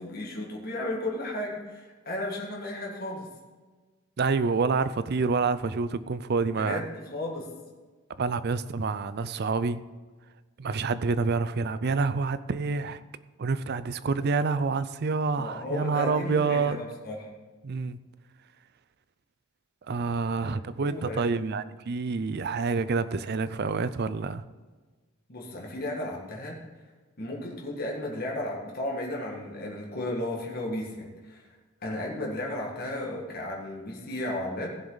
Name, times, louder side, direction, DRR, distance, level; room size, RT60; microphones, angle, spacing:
voice 1, 0.0-3.3 6.5-7.5 15.4-17.3 20.4-21.2 25.3-26.6 27.2-31.5 31.8-34.7, left 1 dB, 45° left, -2 dB, 1.8 m, -34 dB
voice 2, 4.2-6.8 8.2-9.8 10.6-13.0 13.4-16.8 17.6-18.0 19.9-24.4, right 4 dB, 50° right, 14 dB, 0.5 m, -27 dB
16.0 x 7.2 x 3.9 m, 1.3 s
head